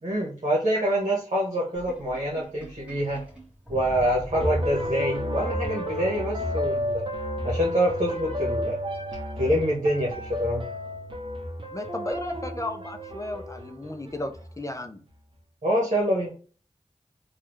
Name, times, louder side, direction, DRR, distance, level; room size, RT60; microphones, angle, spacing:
voice 1, 0.0-3.2 3.7-7.1 7.4-8.8 9.4-10.7 15.6-16.3, equal, 65° right, 1.1 m, -26 dB
Sink (filling or washing), 1.7-5.5, right 1 dB, 10° right, 1.5 m, -42 dB
sound 1, 4.3-14.5, equal, 45° right, 0.8 m, -31 dB
voice 2, 11.7-15.0, left 1 dB, 25° left, 0.5 m, -34 dB
3.2 x 2.3 x 3.0 m
wide cardioid pair, 50°, 13 cm